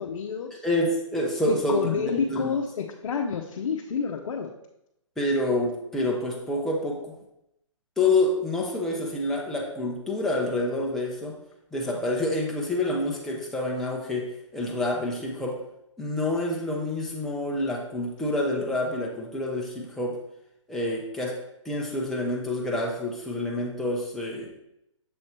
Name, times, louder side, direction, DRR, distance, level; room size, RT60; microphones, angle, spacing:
voice 1, 0.0-0.6 1.5-4.5, left 6 dB, 70° left, 1 dB, 0.7 m, -29 dB
voice 2, 0.6-2.6 5.2-7.1 8.0-11.4 11.7-15.6 16.0-20.2 20.7-24.5, left 1 dB, ahead, -3 dB, 0.7 m, -28 dB
6.9 x 3.2 x 4.3 m, 0.82 s
hypercardioid pair, 150°, 17 cm